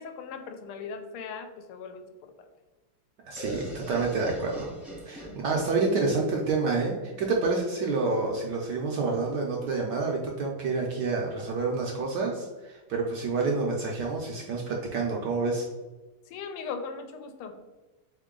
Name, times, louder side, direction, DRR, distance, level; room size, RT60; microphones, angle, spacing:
voice 1, 0.0-2.3 5.2-5.5 16.3-17.5, left 5 dB, 85° left, 7 dB, 1.5 m, -39 dB
voice 2, 3.3-4.7 5.0-15.7, right 3 dB, 70° right, -1 dB, 1.0 m, -28 dB
sound 1, 3.4-7.1, equal, ahead, 0.6 m, -42 dB
3.8 x 3.6 x 3.6 m, 1.2 s
omnidirectional pair, 2.4 m